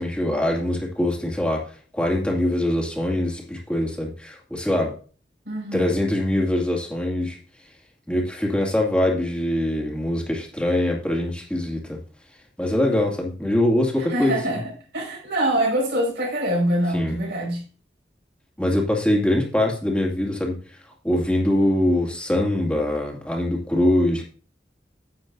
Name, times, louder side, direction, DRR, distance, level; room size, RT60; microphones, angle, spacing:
voice 1, 0.0-1.6 1.9-5.0 5.7-7.4 8.1-12.0 12.6-14.4 16.9-17.2 18.6-20.6 21.0-24.2, left 1 dB, 5° left, 2.4 m, -23 dB
voice 2, 5.4-5.9 14.0-17.6, right 1 dB, 70° right, 5.2 m, -25 dB
10.5 x 8.1 x 2.6 m
head